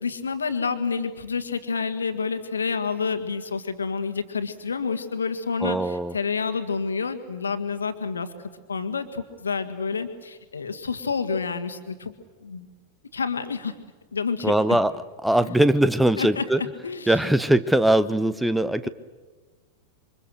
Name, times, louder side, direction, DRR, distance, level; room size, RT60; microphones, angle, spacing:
voice 1, 0.0-8.3 8.7-12.1 12.4-12.7 13.1-13.7 14.1-14.8 15.3-15.5 16.2-17.4 18.8-18.9, left 5 dB, 75° left, 8 dB, 1.9 m, -29 dB
voice 2, 5.6-6.1 14.4-14.9 15.2-16.6 17.1-18.9, right 1 dB, 5° right, 14 dB, 0.9 m, -21 dB
27.5 x 24.5 x 6.6 m, 1.4 s
figure-of-eight pair, 90°, 0 cm